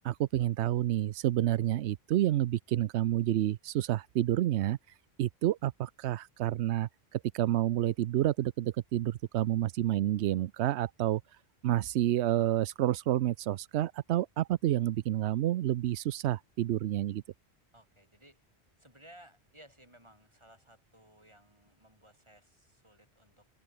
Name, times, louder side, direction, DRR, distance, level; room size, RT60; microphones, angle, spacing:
voice 1, 0.0-4.8 5.2-11.2 11.6-17.2, right 13 dB, 90° right, 0.9 m, -29 dB
voice 2, 17.7-18.5 18.8-23.5, right 1 dB, 25° right, 6.9 m, -58 dB
omnidirectional pair, 1.1 m